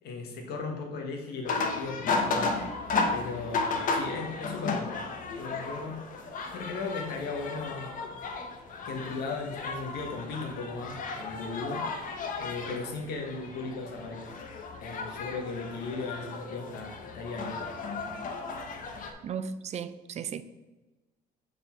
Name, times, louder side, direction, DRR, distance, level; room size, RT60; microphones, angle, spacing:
voice 1, 0.0-2.5 3.1-5.0 5.4-6.0 6.5-8.0 8.8-11.8 12.3-14.4 14.8-17.6, left 4 dB, 75° left, 1.3 m, -37 dB
sound 1, 1.5-19.1, left 3 dB, 55° left, 0.9 m, -34 dB
voice 2, 19.2-20.4, right 7 dB, 40° right, 0.4 m, -35 dB
6.5 x 4.1 x 4.5 m
cardioid pair, 110°, 17 cm